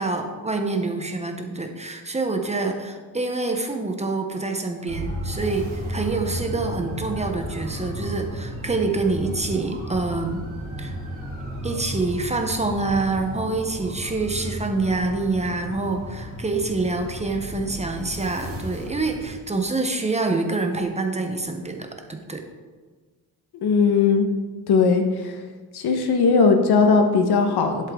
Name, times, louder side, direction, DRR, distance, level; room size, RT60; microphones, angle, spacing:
voice 1, 0.0-10.4 10.8-11.0 11.6-22.4, right 3 dB, 15° right, 4 dB, 0.7 m, -26 dB
sound 1, 4.9-19.3, equal, 35° right, 2.9 m, -33 dB
voice 2, 23.5-24.3 24.7-25.4 25.7-27.9, left 4 dB, 70° left, 5 dB, 1.2 m, -19 dB
11.0 x 8.0 x 3.7 m, 1.4 s
wide cardioid pair, 165°, 40 cm